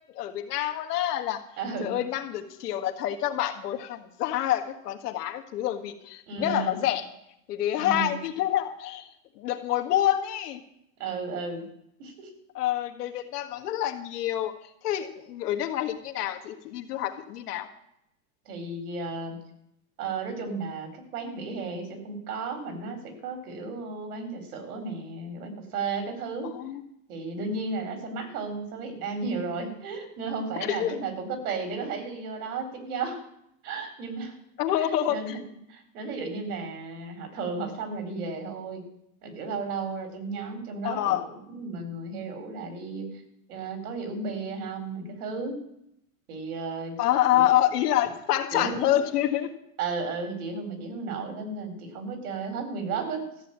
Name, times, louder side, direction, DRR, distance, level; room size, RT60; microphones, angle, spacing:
voice 1, 0.1-1.4 1.8-7.0 7.5-9.1 9.4-10.6 12.6-14.5 14.8-17.7 26.4-26.8 30.7-31.0 34.6-35.4 40.8-41.2 47.0-49.5, left 12 dB, 90° left, 7 dB, 1.8 m, -27 dB
voice 2, 1.6-2.0 6.3-6.8 7.8-8.2 11.0-11.7 12.0-12.3 18.5-19.4 20.0-26.6 27.1-33.2 33.6-34.4 35.1-35.4 35.7-38.8 39.2-43.2 43.5-45.6 46.3-47.0 47.3-47.4 48.5-48.9 49.8-53.3, right 4 dB, 70° right, 7 dB, 4.1 m, -34 dB
14.0 x 7.7 x 8.8 m, 0.77 s
supercardioid pair, 170°, 46 cm